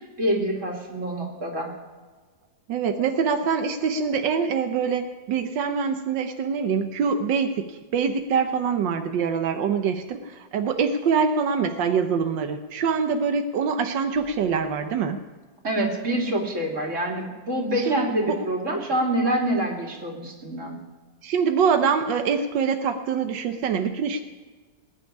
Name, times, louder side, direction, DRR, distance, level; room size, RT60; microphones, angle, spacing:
voice 1, 0.2-1.7 15.6-20.7, right 1 dB, 40° right, 0 dB, 3.2 m, -26 dB
voice 2, 2.7-7.6 7.9-15.2 17.8-18.4 21.2-24.2, right 6 dB, 90° right, 6 dB, 1.6 m, -24 dB
19.5 x 7.0 x 9.9 m, 1.4 s
omnidirectional pair, 1.9 m